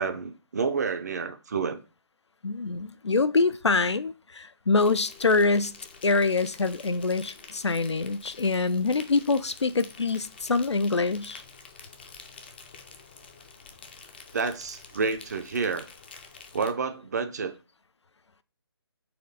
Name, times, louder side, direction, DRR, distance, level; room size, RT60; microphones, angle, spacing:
voice 1, 0.0-1.8 14.3-15.8 16.5-17.5, right 5 dB, 40° right, 0.5 m, -29 dB
voice 2, 2.4-5.8 6.0-11.4, left 3 dB, 85° left, 0.4 m, -25 dB
Insect, 4.8-16.7, left 5 dB, 25° left, 0.4 m, -48 dB
4.3 x 3.1 x 3.9 m
figure-of-eight pair, 145°, 14 cm